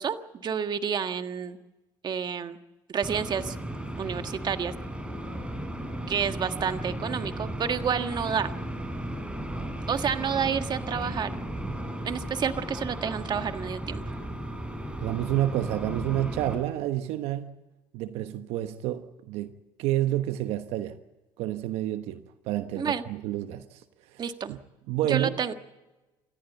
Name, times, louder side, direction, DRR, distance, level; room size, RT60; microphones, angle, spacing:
voice 1, 0.0-1.6 2.0-2.6 2.9-3.5 4.0-4.7 6.1-8.5 9.9-11.3 12.0-14.0 22.7-23.0 24.2-24.5 25.1-25.5, right 7 dB, 45° right, 1.6 m, -29 dB
sound 1, 3.0-16.6, right 1 dB, 10° right, 6.3 m, -35 dB
voice 2, 15.0-17.5 17.9-21.0 21.4-24.2 24.5-24.6 24.9-25.4, right 13 dB, 75° right, 1.2 m, -29 dB
27.5 x 14.5 x 8.3 m
supercardioid pair, 75°, 10 cm